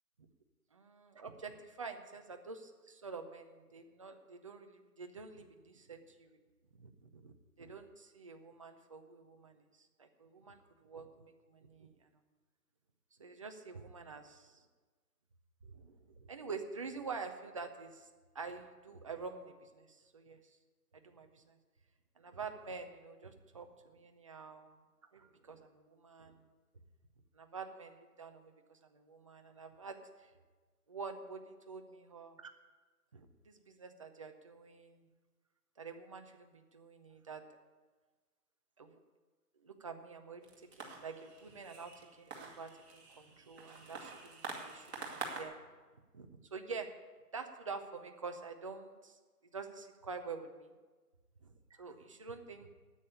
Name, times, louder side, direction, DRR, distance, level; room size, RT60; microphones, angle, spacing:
voice 1, 0.7-6.4 6.7-9.6 10.0-12.0 13.2-14.6 15.6-18.1 18.3-20.4 21.0-21.6 22.2-24.7 25.1-26.4 27.4-30.3 30.9-31.8 32.1-32.5 33.1-35.1 35.8-37.4 38.8-39.0 39.6-40.5 40.8-41.9 42.2-45.6 46.1-46.9 47.3-49.2 49.5-50.7 51.8-52.7, right 4 dB, 20° right, 6 dB, 0.6 m, -47 dB
sound 1, 40.4-45.4, right 4 dB, 45° right, 2.5 m, -47 dB
9.6 x 8.8 x 9.8 m, 1.3 s
hypercardioid pair, 155°, 47 cm